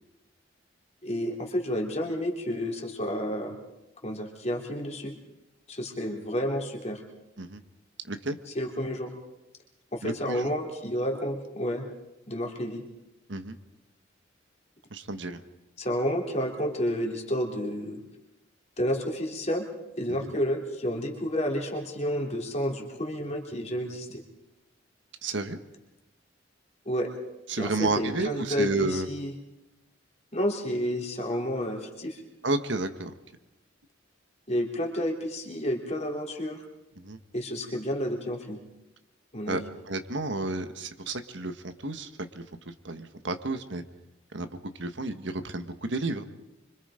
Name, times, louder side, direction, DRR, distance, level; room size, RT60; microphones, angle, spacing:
voice 1, 1.0-3.6 4.0-5.2 5.7-7.0 8.5-9.1 9.9-11.9 12.3-12.8 15.8-18.0 18.8-19.7 20.0-24.2 26.8-27.1 27.6-29.3 30.3-32.2 34.5-36.6 37.3-38.6 39.3-39.6, equal, 35° left, 1 dB, 3.3 m, -30 dB
voice 2, 8.1-8.4 10.0-10.5 13.3-13.6 14.9-15.4 20.1-20.3 25.2-25.6 27.5-29.1 32.4-33.1 37.0-37.2 39.5-42.1 42.3-42.4 42.8-43.8 44.3-44.5 44.8-46.2, right 2 dB, 65° right, 8 dB, 1.5 m, -31 dB
26.0 x 25.0 x 5.1 m, 0.93 s
head